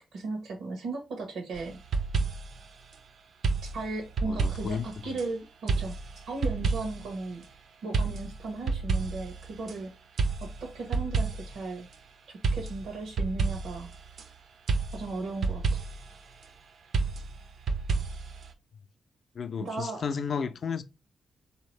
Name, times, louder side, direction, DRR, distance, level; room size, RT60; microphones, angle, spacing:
voice 1, 0.1-1.8 3.7-6.0 6.3-7.4 7.8-9.9 10.4-11.9 12.3-13.9 14.9-15.8 19.6-20.0, right 3 dB, 85° right, 1.1 m, -36 dB
sound 1, 1.6-2.6 3.4-5.3 5.7-7.1 7.9-9.8 10.2-11.6 12.4-14.3 14.7-16.1 16.9-18.5, right 4 dB, 55° right, 0.5 m, -30 dB
voice 2, 4.3-5.2 19.4-20.8, left 6 dB, 50° left, 0.4 m, -33 dB
4.1 x 2.8 x 3.1 m
wide cardioid pair, 145°, 0 cm